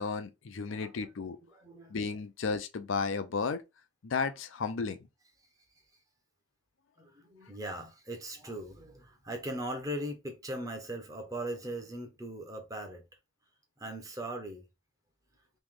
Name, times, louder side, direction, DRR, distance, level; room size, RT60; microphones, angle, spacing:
voice 1, 0.0-1.4 1.9-3.6 4.0-5.0, left 4 dB, 70° left, 0.5 m, -33 dB
voice 2, 0.6-1.1 1.5-2.0 7.0-13.0 13.8-14.6, right 1 dB, 15° right, 0.8 m, -39 dB
3.1 x 2.9 x 3.6 m
head